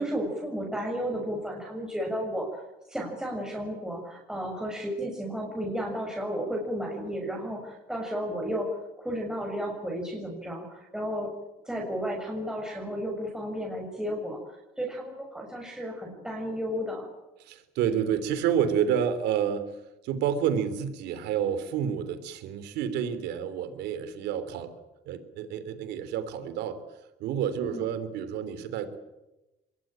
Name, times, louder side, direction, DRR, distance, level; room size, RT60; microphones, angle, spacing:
voice 1, 0.0-2.6 2.9-11.3 11.6-17.1 27.6-27.9, equal, 5° right, -1 dB, 6.8 m, -33 dB
voice 2, 17.4-19.7 20.0-24.7 25.0-26.8 27.2-29.0, right 8 dB, 85° right, 12 dB, 3.4 m, -29 dB
24.5 x 21.0 x 9.0 m, 1.0 s
cardioid pair, 110°, 17 cm